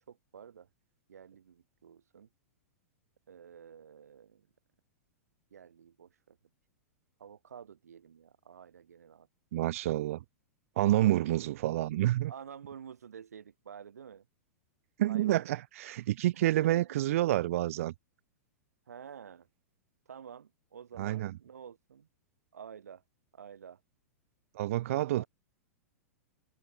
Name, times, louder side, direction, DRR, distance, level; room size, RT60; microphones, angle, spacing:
voice 1, 0.1-0.7 1.1-2.3 3.3-4.5 5.5-6.4 7.2-9.3 10.8-11.3 12.3-14.2 15.0-15.5 16.3-17.0 18.9-19.5 20.1-22.1 22.5-23.0 23.3-23.8 24.9-25.3, right 7 dB, 80° right, 4.4 m, -49 dB
voice 2, 9.5-10.2 10.8-12.3 15.0-17.9 21.0-21.3 24.5-25.2, right 14 dB, 60° right, 1.2 m, -28 dB
hypercardioid pair, 105°, 8 cm